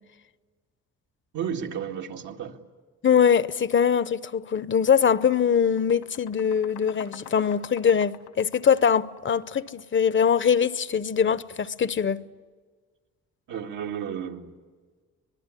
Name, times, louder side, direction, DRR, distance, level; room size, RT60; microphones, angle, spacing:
voice 1, 1.3-2.6 13.5-14.5, right 8 dB, 85° right, 2.3 m, -32 dB
voice 2, 3.0-12.2, left 7 dB, 40° left, 0.8 m, -22 dB
sound 1, 4.4-4.6 5.0-9.9, left 10 dB, 85° left, 2.3 m, -47 dB
25.0 x 21.0 x 9.8 m
cardioid pair, 90°, 30 cm